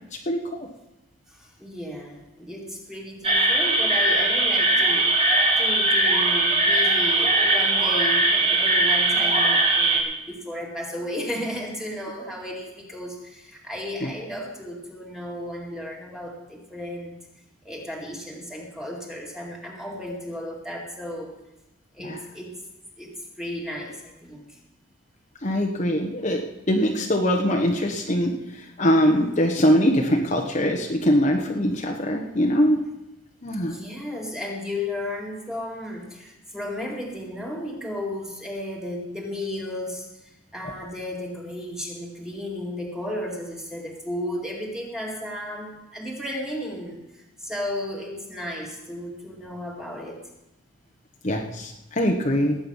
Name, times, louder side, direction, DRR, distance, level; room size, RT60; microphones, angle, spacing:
voice 1, 0.3-0.7 22.0-22.2 25.4-26.4 26.7-28.3 28.8-32.8 33.4-33.7 51.2-52.6, equal, 35° left, 1 dB, 1.1 m, -22 dB
voice 2, 1.3-5.2 5.6-17.2 17.6-21.3 21.9-22.5 23.0-23.1 23.4-24.6 33.6-40.1 40.5-50.2, left 1 dB, 5° right, -1 dB, 2.2 m, -34 dB
sound 1, 3.2-10.0, right 2 dB, 30° right, 2.0 m, -20 dB
18.0 x 8.7 x 5.5 m, 0.95 s
head